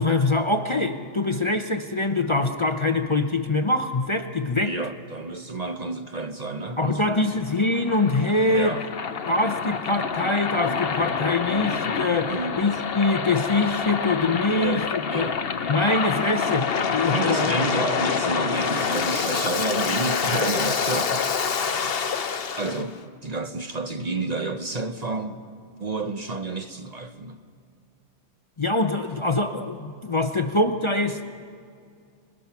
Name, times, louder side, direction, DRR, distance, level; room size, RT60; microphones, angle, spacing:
voice 1, 0.0-4.8 6.8-8.8 9.3-14.8 15.1-15.3 15.7-17.5 28.6-31.2, left 2 dB, 30° left, 0.7 m, -24 dB
voice 2, 4.6-7.4 8.5-8.9 12.3-12.6 14.5-15.4 17.1-21.6 22.6-25.5 25.8-27.4, right 3 dB, 40° right, 0.9 m, -30 dB
Waves surf, 7.0-22.8, left 6 dB, 60° left, 1.1 m, -27 dB
26.0 x 21.5 x 5.9 m
omnidirectional pair, 1.1 m